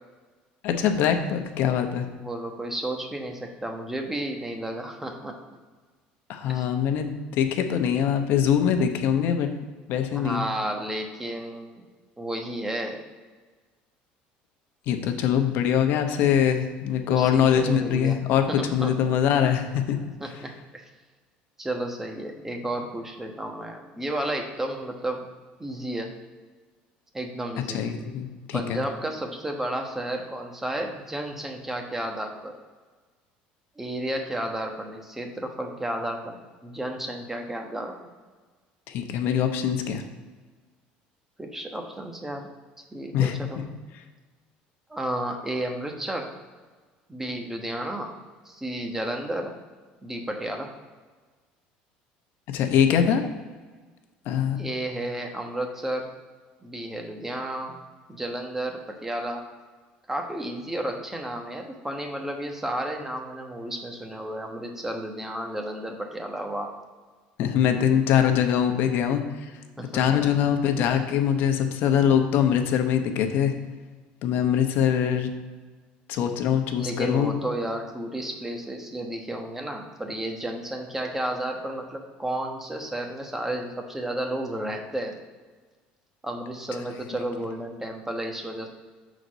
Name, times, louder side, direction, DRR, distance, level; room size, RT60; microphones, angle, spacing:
voice 1, 0.6-2.1 6.3-9.5 9.9-10.4 14.9-20.0 27.7-28.8 38.9-40.0 43.1-43.3 52.5-53.2 54.3-54.6 67.4-69.2 69.9-73.5 74.2-75.3 76.1-77.3, left 8 dB, 65° left, 6 dB, 0.8 m, -23 dB
voice 2, 2.2-5.4 6.5-6.7 10.1-11.8 12.2-13.0 17.1-18.2 18.5-18.9 20.2-20.5 21.6-25.2 25.6-26.1 27.1-27.8 28.5-32.5 33.8-36.4 36.6-37.9 41.4-42.5 42.9-43.6 44.9-46.3 47.1-48.1 48.4-49.6 50.0-50.7 54.5-56.1 56.6-57.8 58.1-59.4 60.1-66.7 69.8-70.2 76.8-85.1 86.2-88.7, right 1 dB, 10° right, 3 dB, 1.1 m, -32 dB
6.4 x 4.0 x 6.2 m, 1.4 s
supercardioid pair, 110°, 4 cm